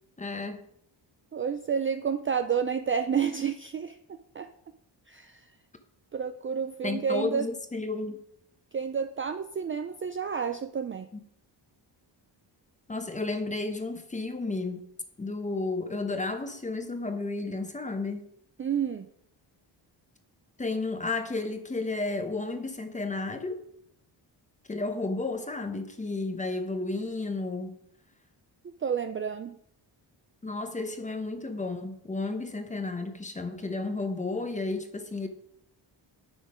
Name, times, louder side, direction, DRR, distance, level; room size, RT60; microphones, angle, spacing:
voice 1, 0.2-0.7 6.8-8.2 11.1-11.2 12.9-14.9 15.2-18.2 20.6-23.6 24.7-27.8 30.4-35.3, left 3 dB, 15° left, 7 dB, 0.9 m, -32 dB
voice 2, 1.3-4.0 4.3-4.5 5.1-5.4 6.1-7.5 8.7-11.1 18.6-19.1 28.8-29.6, right 7 dB, 30° right, 8 dB, 0.4 m, -30 dB
9.2 x 6.3 x 5.0 m, 0.70 s
wide cardioid pair, 165°, 44 cm